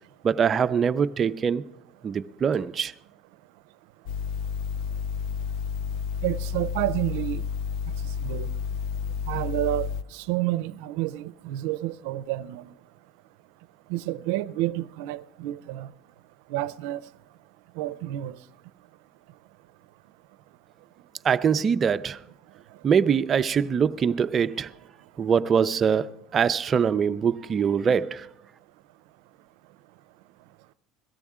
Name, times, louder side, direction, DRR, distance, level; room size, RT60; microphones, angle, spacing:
voice 1, 0.2-1.7 2.0-2.9 21.2-22.2 22.8-24.7 25.2-28.3, right 7 dB, 30° right, 0.4 m, -23 dB
sound 1, 4.1-10.0, left 7 dB, 70° left, 0.4 m, -31 dB
voice 2, 6.2-7.4 8.2-8.5 9.3-12.7 13.9-15.9 16.5-17.0 17.8-18.4, right 15 dB, 85° right, 0.5 m, -29 dB
17.5 x 13.5 x 3.6 m
cardioid pair, 135°, 0 cm